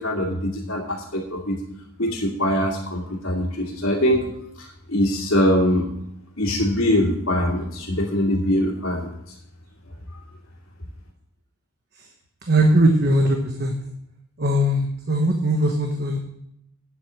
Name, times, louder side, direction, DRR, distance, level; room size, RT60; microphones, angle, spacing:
voice 1, 0.0-1.6 2.0-4.3 4.6-5.9 6.4-9.3, equal, 65° left, -5 dB, 2.3 m, -23 dB
voice 2, 12.5-13.7 14.4-16.2, right 1 dB, 45° right, 3 dB, 1.1 m, -19 dB
9.4 x 8.1 x 6.2 m, 0.75 s
head